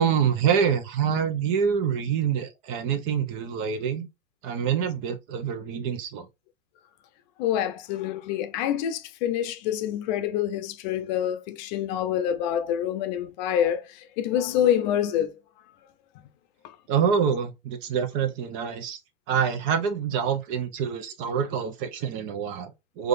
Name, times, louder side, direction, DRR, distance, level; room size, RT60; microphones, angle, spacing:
voice 1, 0.0-4.1 4.4-6.3 16.9-19.0 19.3-23.1, right 7 dB, 45° right, 0.8 m, -26 dB
voice 2, 7.4-13.9 14.2-15.3, left 10 dB, 50° left, 0.6 m, -26 dB
4.8 x 2.5 x 2.6 m
hypercardioid pair, 100°, 29 cm